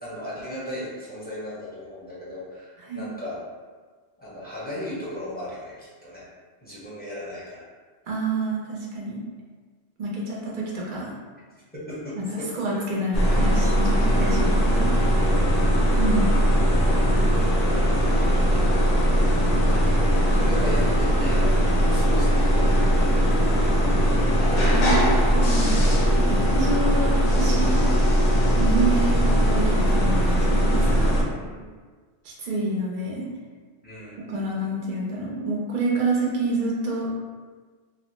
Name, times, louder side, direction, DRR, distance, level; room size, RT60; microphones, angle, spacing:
voice 1, 0.0-3.4 4.2-6.2 6.6-7.6 11.7-12.8 14.1-14.7 16.7-17.0 20.3-23.1 31.4-31.7 33.8-34.4, left 1 dB, 10° left, -9 dB, 0.6 m, -36 dB
voice 2, 8.1-9.2 10.0-11.1 12.2-12.3 12.5-14.9 16.0-16.3 24.6-25.8 26.2-27.8 28.5-31.1 32.2-33.2 34.3-37.1, right 2 dB, 55° right, -4 dB, 0.5 m, -28 dB
sound 1, 13.1-31.2, equal, 50° left, 0.5 m, -20 dB
2.8 x 2.0 x 3.0 m, 1.5 s
omnidirectional pair, 1.1 m